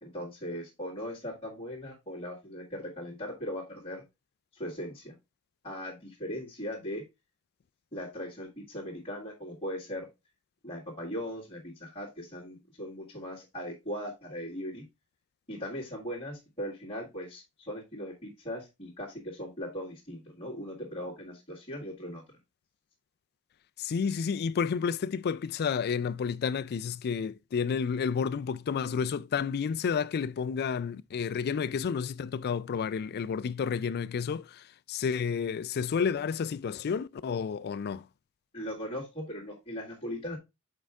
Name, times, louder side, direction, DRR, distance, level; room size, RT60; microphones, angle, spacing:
voice 1, 0.0-4.0 4.5-5.1 5.6-7.0 7.9-10.1 10.6-14.8 15.5-22.2 38.5-40.4, equal, 30° left, 1.8 m, -39 dB
voice 2, 23.8-38.0, left 6 dB, 45° left, 0.3 m, -31 dB
6.6 x 4.7 x 3.4 m
head